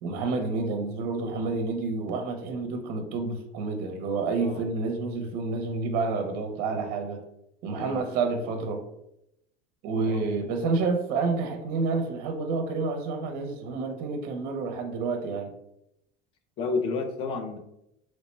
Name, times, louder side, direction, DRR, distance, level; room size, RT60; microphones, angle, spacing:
voice 1, 0.0-7.2 7.6-8.8 9.8-15.5, right 4 dB, 45° right, 5 dB, 0.5 m, -29 dB
voice 2, 16.6-17.6, left 4 dB, 25° left, 5 dB, 0.4 m, -31 dB
3.1 x 2.1 x 4.2 m, 0.81 s
cardioid pair, 170°, 21 cm